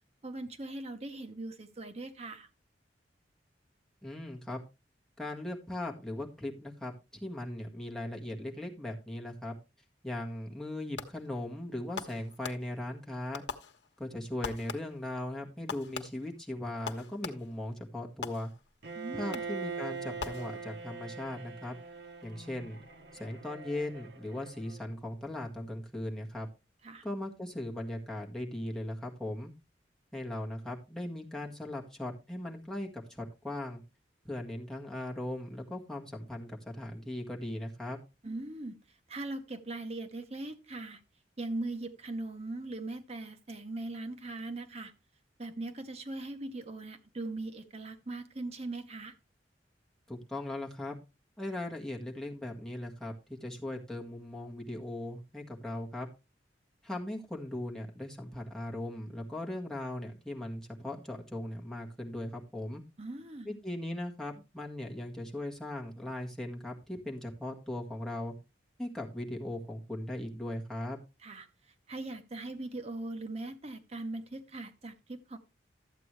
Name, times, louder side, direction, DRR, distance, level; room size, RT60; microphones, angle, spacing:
voice 1, 0.2-2.5 18.9-19.4 26.8-27.1 38.2-41.0 41.4-44.9 45.4-49.2 63.0-63.6 71.2-75.4, right 2 dB, 35° right, 0.8 m, -40 dB
voice 2, 4.0-4.6 5.2-9.5 10.0-13.4 14.0-18.5 19.2-21.7 22.2-22.8 23.1-26.5 27.0-29.5 30.1-33.8 34.2-38.0 50.1-50.9 51.4-56.1 56.8-62.8 63.5-68.3 68.8-71.0, left 1 dB, 5° left, 1.7 m, -38 dB
Fireworks, 11.0-11.4 12.0-13.0 13.3-14.1 14.4-15.1 15.7-17.7 18.2-18.8 19.3-19.7 20.2-20.9, left 5 dB, 70° left, 1.1 m, -43 dB
Bowed string instrument, 18.8-24.8, right 5 dB, 60° right, 1.1 m, -42 dB
12.5 x 8.3 x 3.2 m
head